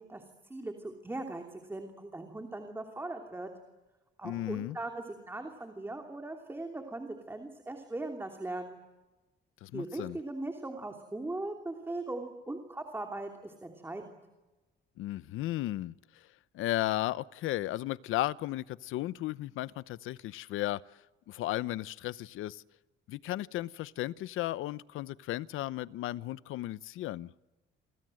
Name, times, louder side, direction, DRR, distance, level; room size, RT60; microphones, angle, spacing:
voice 1, 0.0-3.5 4.2-8.8 9.7-14.2, right 2 dB, 10° right, 2.9 m, -39 dB
voice 2, 4.2-4.8 9.6-10.2 15.0-15.9 16.5-20.8 21.3-22.6 23.1-27.3, left 15 dB, 85° left, 0.8 m, -35 dB
29.5 x 26.0 x 7.8 m
cardioid pair, 145°, 20 cm